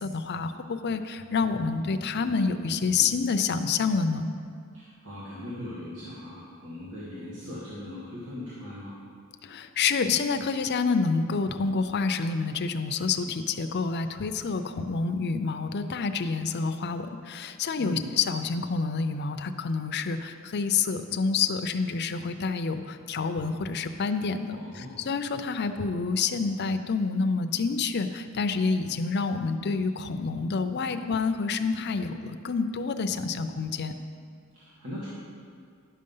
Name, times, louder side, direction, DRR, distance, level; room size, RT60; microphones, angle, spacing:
voice 1, 0.0-4.3 9.4-33.9, left 4 dB, 50° left, 8 dB, 0.5 m, -28 dB
voice 2, 4.7-9.0 17.7-18.1 24.5-25.1 34.5-35.1, left 1 dB, 80° right, -9 dB, 1.9 m, -39 dB
10.5 x 6.6 x 5.5 m, 2.2 s
head